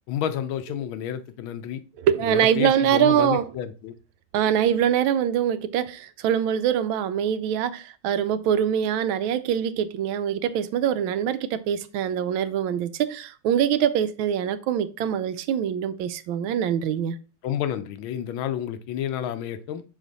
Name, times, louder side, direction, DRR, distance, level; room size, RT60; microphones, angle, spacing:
voice 1, 0.1-1.8 2.2-3.9 17.4-19.8, left 10 dB, 90° left, 1.5 m, -30 dB
voice 2, 2.0-3.5 4.3-17.2, right 9 dB, 90° right, 1.4 m, -24 dB
6.4 x 4.1 x 4.0 m
omnidirectional pair, 2.2 m